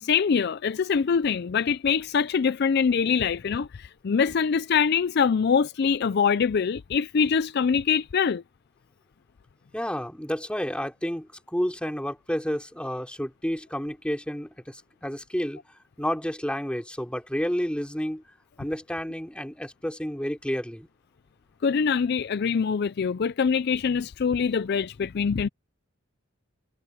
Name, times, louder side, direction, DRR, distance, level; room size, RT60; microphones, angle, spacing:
voice 1, 0.0-8.4 21.6-25.5, left 6 dB, 50° left, 0.4 m, -24 dB
voice 2, 9.7-15.6 16.0-18.2 18.6-20.9, equal, 5° left, 3.6 m, -30 dB
head